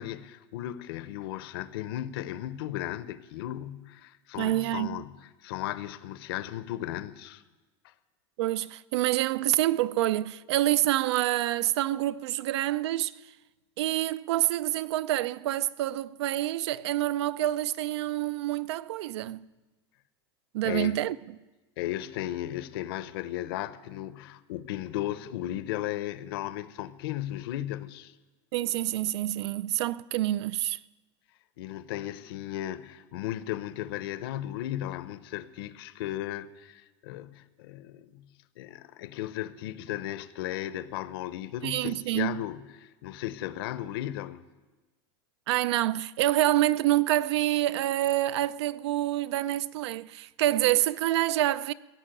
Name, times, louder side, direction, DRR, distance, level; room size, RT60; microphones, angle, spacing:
voice 1, 0.0-5.0 5.4-7.4 7.8-7.9 20.6-20.9 21.8-28.1 31.6-38.2 38.6-44.4, left 13 dB, 60° left, 0.8 m, -35 dB
voice 2, 4.4-5.0 8.4-13.3 13.8-19.4 20.5-21.2 28.5-30.8 41.6-42.4 45.5-51.7, right 14 dB, 80° right, 0.5 m, -27 dB
16.5 x 7.3 x 9.0 m
supercardioid pair, 170°, 14 cm